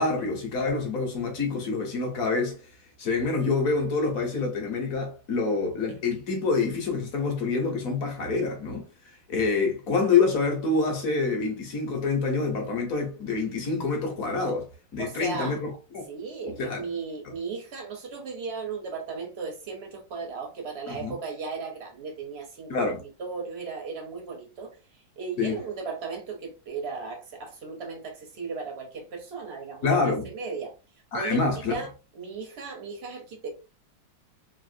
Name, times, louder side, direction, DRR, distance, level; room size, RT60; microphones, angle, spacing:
voice 1, 0.0-2.6 3.0-8.9 9.3-16.0 16.5-16.8 20.9-21.1 22.7-23.0 25.4-25.5 29.8-30.3 31.1-31.8, left 4 dB, 55° left, 1.2 m, -26 dB
voice 2, 15.0-15.6 16.1-30.7 31.1-33.5, right 4 dB, 65° right, 0.6 m, -36 dB
3.3 x 2.4 x 2.5 m
omnidirectional pair, 2.0 m